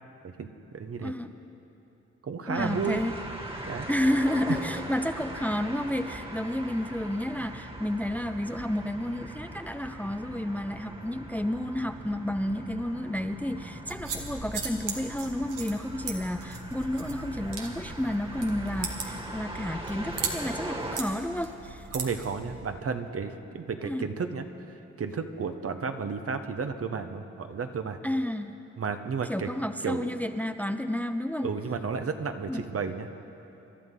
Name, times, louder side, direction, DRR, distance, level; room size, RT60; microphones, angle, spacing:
voice 1, 0.2-1.1 2.2-3.1 3.7-3.9 21.9-28.0 28.8-29.5 29.8-30.1 31.4-33.1, right 5 dB, 50° right, 7 dB, 1.1 m, -33 dB
voice 2, 2.5-3.1 3.9-21.8 23.8-24.1 28.0-28.6 29.3-31.5 32.5-32.6, left 1 dB, 5° left, 8 dB, 0.7 m, -31 dB
sound 1, 2.5-21.0, right 1 dB, 20° right, 2.0 m, -40 dB
sound 2, 13.9-22.6, right 4 dB, 80° right, 1.7 m, -38 dB
27.0 x 12.0 x 3.9 m, 2.9 s
supercardioid pair, 55°, 31 cm